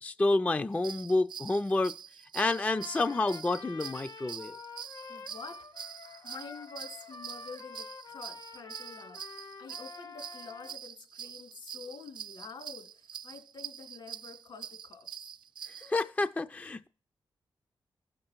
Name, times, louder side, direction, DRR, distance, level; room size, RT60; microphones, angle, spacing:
voice 1, 0.0-2.0 2.3-4.6 15.8-16.9, left 2 dB, 15° left, 0.3 m, -29 dB
sound 1, 0.7-15.9, right 8 dB, 60° right, 0.4 m, -45 dB
Trumpet, 2.4-10.8, left 4 dB, 55° left, 0.7 m, -48 dB
voice 2, 5.1-5.7 6.2-9.2 9.6-15.1, left 5 dB, 75° left, 2.7 m, -48 dB
15.5 x 6.5 x 3.0 m
cardioid pair, 90°, 9 cm